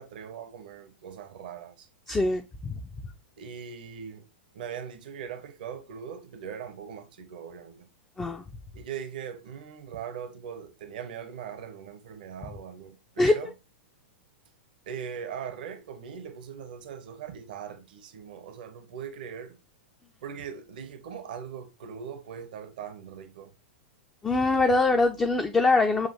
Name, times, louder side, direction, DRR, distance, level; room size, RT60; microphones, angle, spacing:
voice 1, 0.0-1.9 3.4-4.3 4.5-7.9 8.7-13.5 14.9-19.6 20.2-23.5, right 7 dB, 55° right, 0.7 m, -40 dB
voice 2, 2.1-2.8 8.2-8.4 13.2-13.5 24.2-26.1, left 3 dB, 10° left, 0.4 m, -23 dB
7.2 x 2.4 x 2.7 m
figure-of-eight pair, 100°, 6 cm